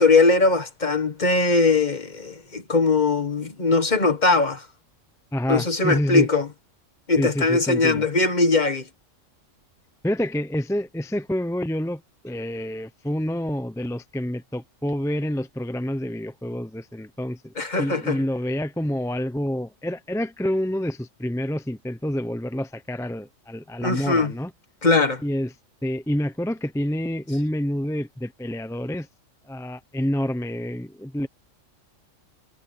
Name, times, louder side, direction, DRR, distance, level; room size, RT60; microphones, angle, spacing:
voice 1, 0.0-4.6 5.5-6.5 7.1-8.8 17.6-18.2 23.8-24.3 24.8-25.2, left 3 dB, 35° left, 1.6 m, -20 dB
voice 2, 5.3-6.3 7.2-8.0 10.0-24.5 25.2-25.5 25.8-29.1 29.5-31.3, equal, 5° left, 0.5 m, -28 dB
omnidirectional pair, 1.3 m